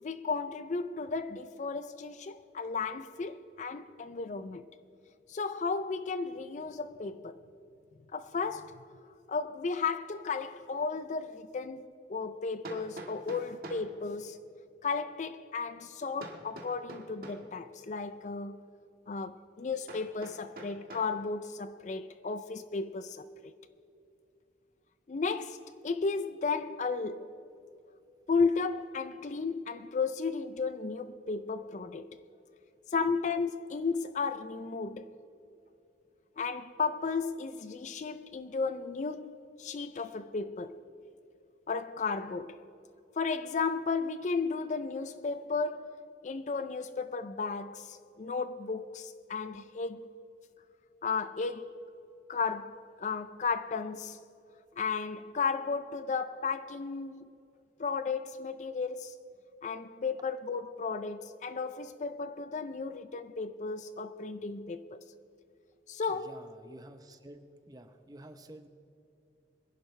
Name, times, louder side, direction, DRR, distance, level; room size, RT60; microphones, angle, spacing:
voice 1, 0.0-4.6 5.3-7.4 8.1-8.8 9.3-14.4 14.8-18.6 19.1-23.5 25.1-27.3 28.3-32.2 32.9-35.1 36.4-40.8 41.7-42.6 43.2-50.2 51.0-51.8 52.3-54.2 54.8-57.3 57.8-59.1 59.6-65.0 65.9-66.4, left 4 dB, 40° left, 0.4 m, -34 dB
Hammer, 11.0-11.1 12.6-13.9 16.2-17.5 19.9-21.2, right 1 dB, 50° right, 1.6 m, -45 dB
voice 2, 66.1-68.7, right 1 dB, 20° right, 0.7 m, -51 dB
24.0 x 11.0 x 3.2 m
head